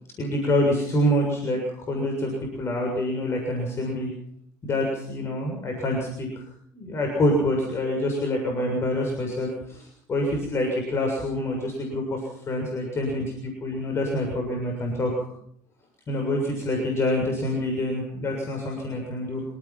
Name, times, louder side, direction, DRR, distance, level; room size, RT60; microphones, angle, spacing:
voice 1, 0.2-2.3 2.6-4.1 4.6-6.4 6.7-12.2 12.5-15.1 16.1-19.4, left 1 dB, 35° left, 1 dB, 7.0 m, -26 dB
26.0 x 18.0 x 6.0 m, 0.66 s
supercardioid pair, 95°, 8 cm